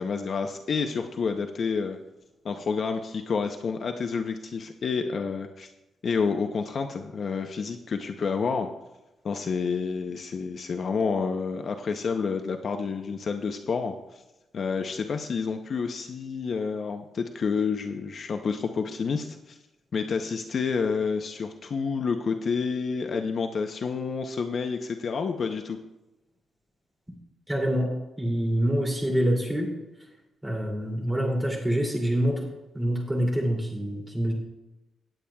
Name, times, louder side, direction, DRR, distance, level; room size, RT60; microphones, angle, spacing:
voice 1, 0.0-2.0 2.4-5.7 6.0-8.7 9.2-14.2 14.5-19.6 19.9-25.8, left 5 dB, 45° left, 5 dB, 0.6 m, -29 dB
voice 2, 27.5-29.7 30.4-32.5 32.7-34.3, equal, 10° right, -1 dB, 2.6 m, -26 dB
18.0 x 8.6 x 2.3 m, 0.99 s
wide cardioid pair, 165°, 0 cm